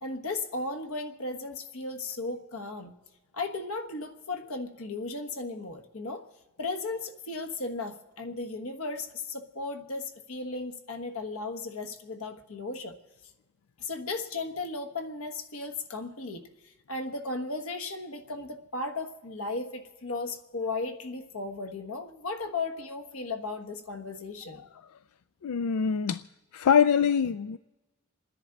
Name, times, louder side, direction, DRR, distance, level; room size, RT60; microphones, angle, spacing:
voice 1, 0.0-2.9 3.3-6.2 6.6-13.0 13.8-24.6, left 3 dB, 70° left, 6 dB, 1.3 m, -36 dB
voice 2, 25.4-26.2 26.5-27.6, left 7 dB, 85° left, 13 dB, 0.4 m, -24 dB
28.0 x 10.5 x 4.0 m, 1.1 s
head